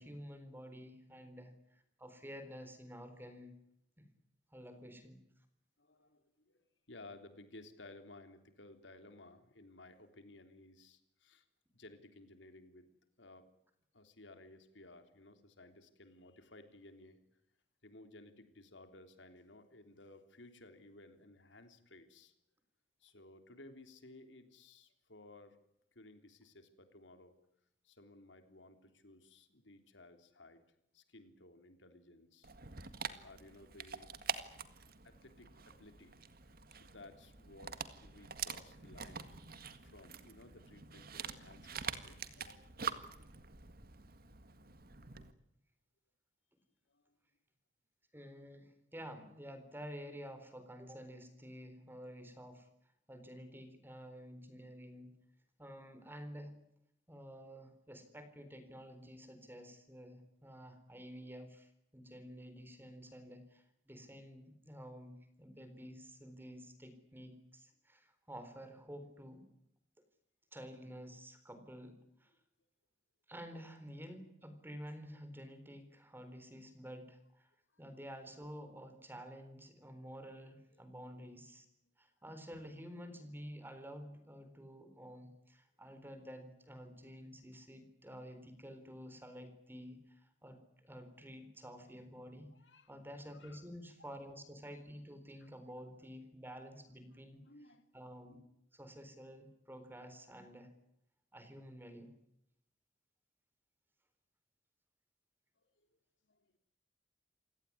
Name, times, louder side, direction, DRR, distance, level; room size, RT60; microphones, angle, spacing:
voice 1, 0.0-3.5 4.0-4.1 4.5-5.2 48.1-52.7 53.1-55.1 55.6-56.5 57.1-69.4 70.5-72.3 73.3-77.5 77.8-81.7 82.0-92.5 92.9-97.4 97.9-98.4 98.7-100.7 101.3-102.1, equal, 10° right, 10 dB, 4.0 m, -51 dB
voice 2, 5.8-11.5 11.7-12.9 13.2-13.5 13.9-17.4 17.8-22.3 23.0-25.6 26.0-27.3 27.8-30.6 30.9-32.5 33.2-34.1 35.0-36.2 36.5-42.6 46.9-47.2 80.7-80.8 92.5-92.9 93.3-93.6 96.9-97.0 97.4-97.8 105.8-105.9 106.2-106.5, left 2 dB, 80° left, 8 dB, 3.4 m, -58 dB
Dog, 32.4-45.3, right 6 dB, 55° right, 1.8 m, -45 dB
28.0 x 17.5 x 9.7 m, 0.77 s
head